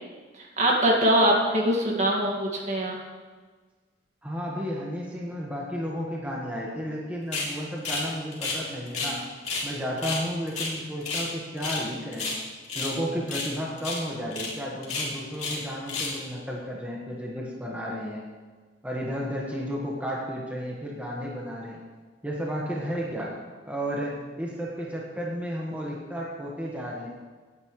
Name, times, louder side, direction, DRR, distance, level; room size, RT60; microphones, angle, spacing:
voice 1, 0.3-3.0, right 1 dB, 40° right, -1 dB, 2.1 m, -23 dB
voice 2, 4.2-9.2 9.6-12.4 12.7-18.2 18.8-21.8 22.2-23.4 23.6-27.1, equal, 10° right, -4 dB, 1.5 m, -33 dB
sound 1, 7.3-7.5 7.8-8.1 8.3-9.2 9.4-9.7 10.0-11.3 11.6-11.9 12.1-12.9 13.3-13.5 13.8-14.0 14.3-14.5 14.8-15.6 15.9-16.2, left 3 dB, 40° left, 2.9 m, -31 dB
17.5 x 9.7 x 3.2 m, 1.4 s
head